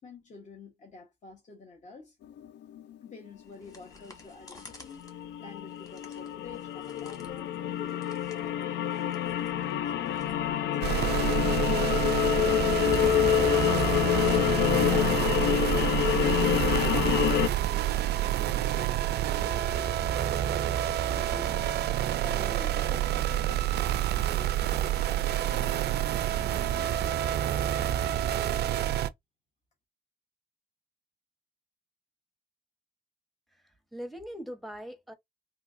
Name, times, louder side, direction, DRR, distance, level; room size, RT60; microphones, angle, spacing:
voice 1, 0.0-2.2 3.0-9.4 16.8-27.4, left 4 dB, 40° left, 1.1 m, -49 dB
sound 1, 2.4-2.8 4.6-4.7 5.0-17.5, left 11 dB, 75° left, 0.4 m, -27 dB
sound 2, 3.3-17.1, left 1 dB, 20° left, 1.6 m, -53 dB
sound 3, 10.8-29.1, right 11 dB, 65° right, 0.4 m, -28 dB
voice 2, 33.5-35.1, equal, ahead, 0.8 m, -41 dB
3.6 x 2.8 x 2.5 m
cardioid pair, 85°, 18 cm